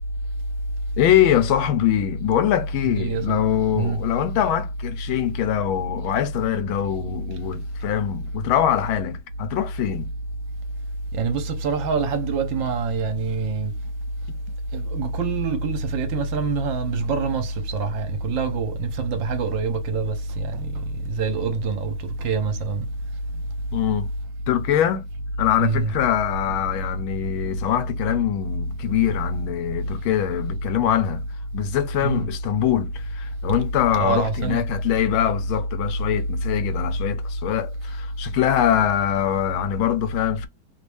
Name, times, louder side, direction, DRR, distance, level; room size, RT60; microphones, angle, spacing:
voice 1, 1.0-10.1 23.7-24.1 24.5-25.1 25.4-31.2 31.5-40.5, left 11 dB, 80° left, 1.4 m, -23 dB
voice 2, 2.8-3.4 3.7-4.0 11.1-13.8 14.7-22.9 25.6-25.9 32.0-32.3 33.9-34.6, right 4 dB, 70° right, 1.4 m, -25 dB
3.3 x 2.5 x 3.3 m
omnidirectional pair, 2.3 m